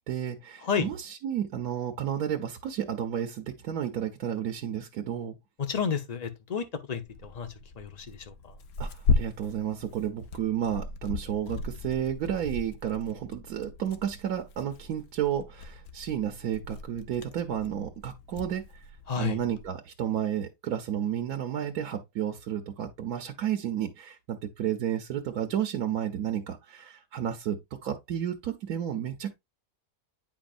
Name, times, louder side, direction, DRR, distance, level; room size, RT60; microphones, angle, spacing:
voice 1, 0.1-5.4 8.8-18.6 19.2-29.3, right 10 dB, 85° right, 1.3 m, -32 dB
voice 2, 5.6-7.5 7.8-8.3 19.1-19.4, left 6 dB, 30° left, 0.9 m, -31 dB
Tearing, 7.1-19.7, left 4 dB, 85° left, 1.3 m, -36 dB
8.8 x 5.1 x 2.5 m
omnidirectional pair, 1.5 m